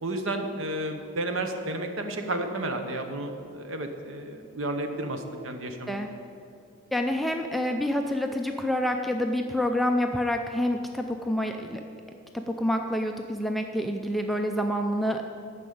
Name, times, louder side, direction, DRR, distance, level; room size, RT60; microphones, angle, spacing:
voice 1, 0.0-6.1, right 1 dB, 60° right, 6 dB, 1.0 m, -32 dB
voice 2, 6.9-11.8 12.3-15.2, left 1 dB, ahead, 4 dB, 0.4 m, -27 dB
10.0 x 6.0 x 8.5 m, 2.5 s
head